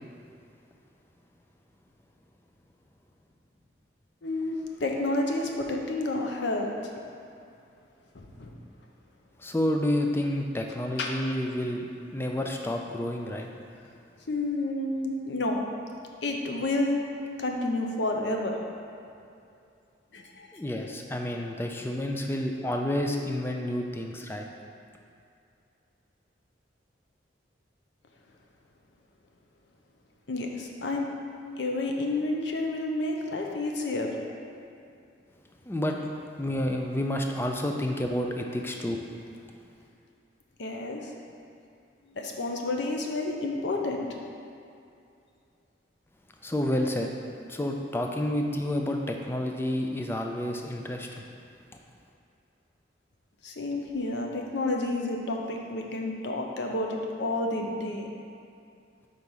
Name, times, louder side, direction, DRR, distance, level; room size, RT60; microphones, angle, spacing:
voice 1, 4.2-6.9 8.1-8.6 11.0-11.1 14.3-15.6 16.2-17.0 17.4-18.6 20.1-20.5 30.3-31.1 31.6-34.2 40.6-41.1 42.1-44.1 53.4-58.1, left 2 dB, 75° left, 1 dB, 0.7 m, -30 dB
voice 2, 9.4-13.5 20.5-24.5 35.6-36.1 36.4-39.0 46.4-47.1 47.5-51.2, left 1 dB, 10° left, 2 dB, 0.3 m, -29 dB
4.7 x 4.0 x 5.5 m, 2.5 s
head